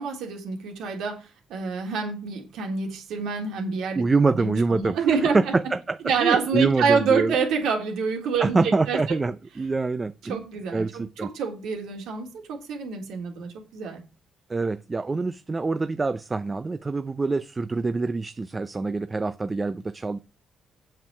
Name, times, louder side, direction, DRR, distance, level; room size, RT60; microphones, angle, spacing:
voice 1, 0.0-4.0 4.3-5.4 6.0-9.2 10.3-14.0, right 5 dB, 85° right, 2 dB, 3.5 m, -27 dB
voice 2, 4.0-5.0 5.3-7.4 8.4-10.4 10.7-11.3 14.5-20.2, right 3 dB, 25° right, 12 dB, 0.6 m, -25 dB
7.7 x 7.1 x 7.5 m, 0.32 s
cardioid pair, 90°, 0 cm